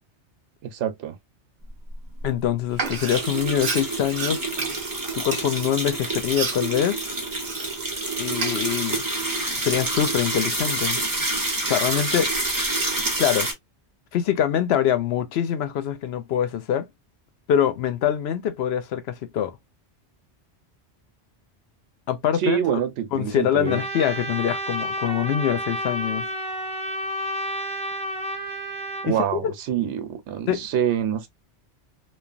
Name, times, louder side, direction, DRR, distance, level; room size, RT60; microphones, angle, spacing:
voice 1, 0.6-1.2 22.4-23.8 29.0-31.3, right 9 dB, 80° right, 1.0 m, -26 dB
sound 1, 1.9-2.0 2.2-2.3 2.9-13.5, right 2 dB, 20° right, 0.7 m, -27 dB
voice 2, 2.2-4.4 5.1-7.0 8.2-9.0 9.5-11.0 11.7-12.3 13.2-13.5 14.1-16.9 17.5-19.6 22.1-22.6 23.1-26.3 29.1-29.4 30.5-30.7, left 10 dB, 70° left, 0.8 m, -24 dB
Frying (food), 2.7-8.0 8.3-9.2, right 4 dB, 55° right, 0.9 m, -32 dB
Trumpet, 23.6-29.1, equal, 10° left, 0.3 m, -30 dB
3.1 x 2.2 x 2.4 m
omnidirectional pair, 1.2 m